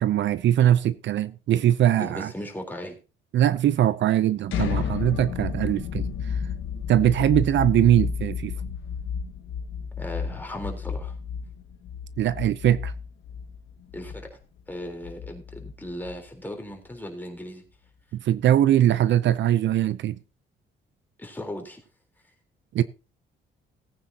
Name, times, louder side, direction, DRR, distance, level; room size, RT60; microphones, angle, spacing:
voice 1, 0.0-2.3 3.3-6.4 6.9-8.6 12.2-12.9 18.2-20.2 22.7-22.8, right 11 dB, 65° right, 0.6 m, -21 dB
voice 2, 2.0-3.0 10.0-11.1 13.9-14.4 14.7-17.6 21.2-21.8, equal, 10° left, 3.9 m, -37 dB
sound 1, 4.5-16.3, left 7 dB, 75° left, 1.3 m, -32 dB
18.5 x 9.3 x 2.9 m
cardioid pair, 90°, 20 cm